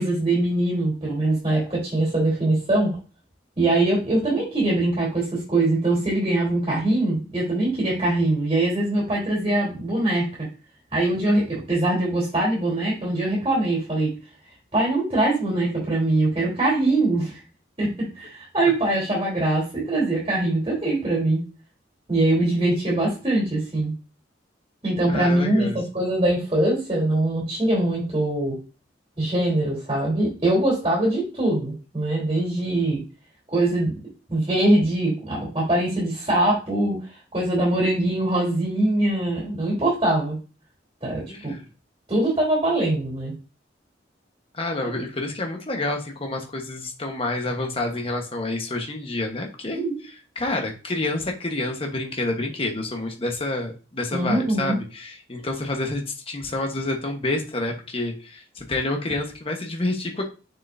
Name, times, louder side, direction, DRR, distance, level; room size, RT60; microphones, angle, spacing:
voice 1, 0.0-2.9 3.6-10.5 10.9-14.1 14.7-17.4 17.8-21.4 22.1-23.9 24.8-28.5 29.2-33.0 33.5-33.9 34.3-37.0 37.3-40.4 41.0-41.6 42.1-43.3 49.7-49.9 54.1-54.8, right 2 dB, 30° right, -5 dB, 3.5 m, -22 dB
voice 2, 25.1-25.8 41.3-41.6 44.5-60.3, left 2 dB, 30° left, 2 dB, 1.2 m, -28 dB
6.7 x 6.5 x 2.7 m, 0.34 s
head